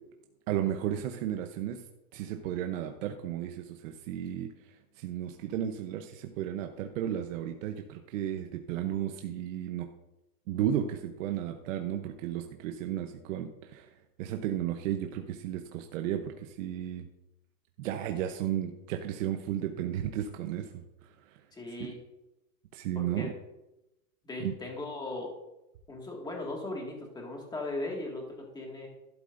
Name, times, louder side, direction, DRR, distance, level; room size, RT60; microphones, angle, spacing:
voice 1, 0.5-1.8 2.1-4.5 5.0-9.9 10.5-13.9 14.2-17.1 17.8-21.3 22.7-23.3 24.4-24.5, right 10 dB, 55° right, 5 dB, 0.9 m, -34 dB
voice 2, 21.5-22.0 22.9-23.3 24.2-25.3 25.9-28.9, left 2 dB, 10° left, 0 dB, 1.9 m, -38 dB
12.0 x 11.5 x 2.6 m, 0.93 s
supercardioid pair, 150°, 48 cm